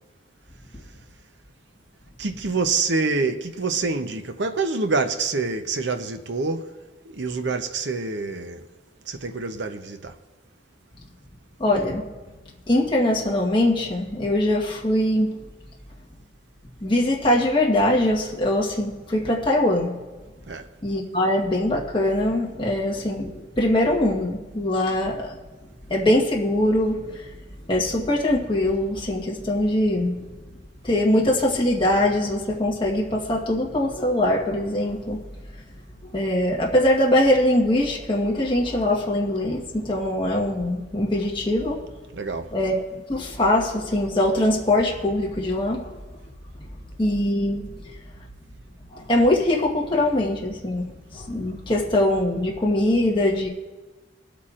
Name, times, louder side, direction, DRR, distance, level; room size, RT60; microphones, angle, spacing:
voice 1, 2.2-6.7 7.0-8.7 9.1-10.2 20.5-20.7 42.1-42.6, right 4 dB, 70° right, 0.8 m, -26 dB
voice 2, 11.6-12.1 12.7-15.5 16.8-20.0 20.8-25.4 25.9-27.2 27.7-30.1 30.8-35.2 36.1-41.8 42.5-42.7 43.1-46.0 47.0-47.7 48.9-53.5, left 1 dB, 30° left, 1.3 m, -22 dB
24.0 x 8.4 x 2.5 m
head